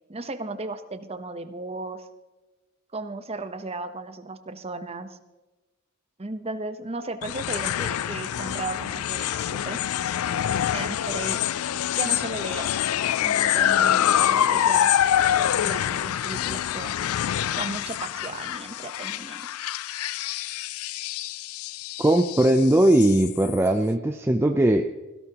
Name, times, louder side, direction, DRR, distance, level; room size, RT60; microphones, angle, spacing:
voice 1, 0.1-2.0 2.9-5.1 6.2-9.8 10.7-11.4 11.9-12.7 13.2-14.9 15.5-16.9 17.6-19.4, right 2 dB, 30° right, 9 dB, 0.9 m, -35 dB
sound 1, 7.2-23.7, left 10 dB, 80° left, 0.4 m, -26 dB
voice 2, 22.0-24.8, right 1 dB, 10° right, 4 dB, 0.5 m, -19 dB
17.5 x 16.5 x 2.9 m, 1.2 s
head